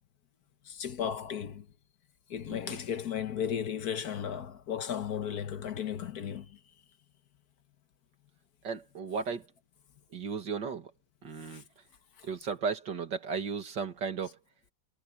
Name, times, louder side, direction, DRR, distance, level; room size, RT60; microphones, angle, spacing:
voice 1, 0.6-1.7 2.3-6.6 11.4-11.6 12.2-12.3, left 8 dB, 60° left, 1.5 m, -35 dB
voice 2, 8.6-9.5 10.1-10.9 11.2-11.6 12.2-14.4, right 5 dB, 75° right, 2.6 m, -35 dB
omnidirectional pair, 2.0 m